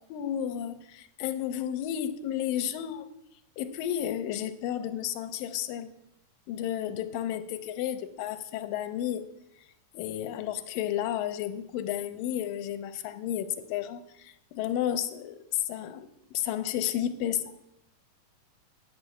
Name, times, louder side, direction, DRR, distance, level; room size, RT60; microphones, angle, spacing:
voice 1, 0.1-3.1 3.6-5.9 6.5-9.3 9.9-17.5, left 11 dB, 90° left, 11 dB, 2.4 m, -32 dB
9.4 x 6.8 x 8.2 m, 0.86 s
omnidirectional pair, 3.9 m